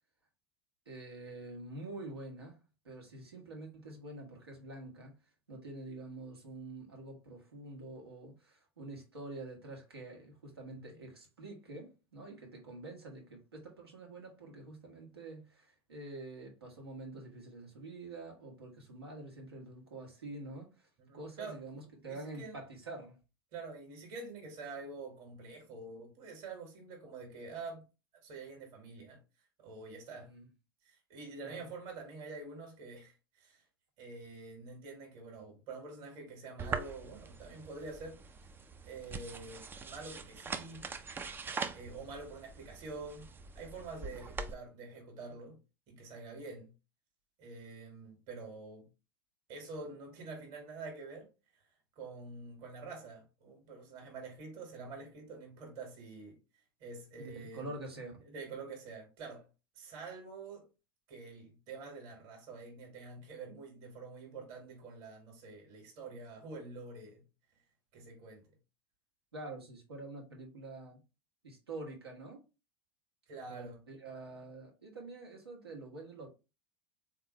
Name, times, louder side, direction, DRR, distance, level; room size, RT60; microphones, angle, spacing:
voice 1, 0.9-2.6 2.8-5.2 5.5-20.9 21.1-23.2 30.2-30.5 31.4-31.6 57.2-58.2 69.3-71.0 71.4-72.4 73.5-76.3, right 2 dB, 80° right, 1.4 m, -47 dB
voice 2, 21.0-22.6 23.5-27.8 28.2-29.2 29.6-30.3 30.8-33.6 34.0-38.2 38.8-41.0 41.5-43.3 43.5-45.6 45.9-46.7 47.4-48.9 49.5-51.3 51.9-56.4 56.8-57.7 58.2-59.4 59.7-60.7 61.1-67.2 67.9-68.5 73.3-73.8, right 3 dB, 50° right, 1.6 m, -47 dB
sound 1, 36.6-44.5, right 4 dB, 15° right, 0.4 m, -43 dB
3.8 x 2.9 x 3.1 m
figure-of-eight pair, 85°, 13 cm